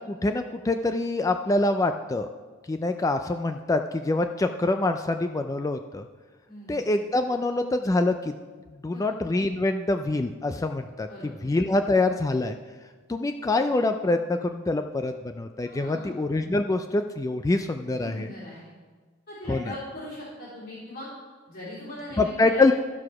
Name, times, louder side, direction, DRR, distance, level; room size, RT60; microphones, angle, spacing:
voice 1, 0.0-2.3 2.7-6.1 6.7-8.3 8.8-12.6 13.1-18.3 19.5-19.7 22.2-22.7, left 2 dB, 15° left, 7 dB, 0.3 m, -25 dB
voice 2, 6.5-6.8 8.9-9.1 11.1-11.5 15.6-16.2 18.0-18.7 19.3-21.1 21.5-22.7, left 1 dB, 50° left, -9 dB, 3.8 m, -40 dB
14.0 x 4.8 x 5.9 m, 1.4 s
head